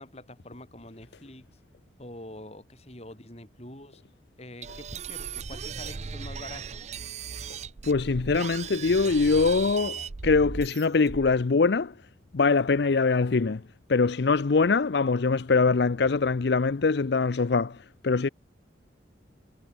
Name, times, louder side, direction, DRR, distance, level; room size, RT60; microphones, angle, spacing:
voice 1, 0.0-1.5 2.0-4.0 4.4-6.8, left 1 dB, 35° left, 3.9 m, -45 dB
sound 1, 4.6-11.4, right 6 dB, 40° right, 0.5 m, -37 dB
voice 2, 7.8-12.0 12.3-13.6 13.9-18.3, left 4 dB, 65° left, 0.6 m, -23 dB
head